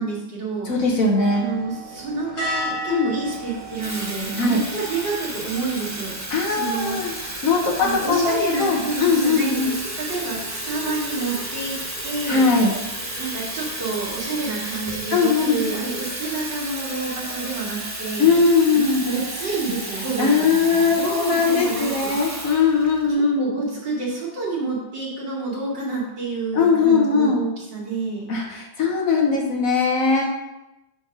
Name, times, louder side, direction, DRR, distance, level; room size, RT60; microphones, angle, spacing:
voice 1, 0.0-1.0 1.3-6.1 6.5-7.5 7.8-11.8 12.0-12.5 13.2-18.4 18.7-22.6 23.4-28.3, right 3 dB, 75° right, -5 dB, 2.9 m, -29 dB
voice 2, 0.6-1.4 2.9-3.1 4.4-4.6 6.3-7.1 7.4-9.7 12.3-12.7 15.1-15.6 18.2-19.0 20.2-23.5 26.5-27.4 28.3-30.2, left 4 dB, 55° left, 0 dB, 1.2 m, -20 dB
sound 1, 1.1-15.0, equal, 70° left, 2.8 m, -38 dB
Water tap faucet / Fill (with liquid), 3.3-23.1, right 1 dB, 20° right, 0.4 m, -32 dB
7.2 x 3.5 x 6.0 m, 0.96 s
omnidirectional pair, 2.0 m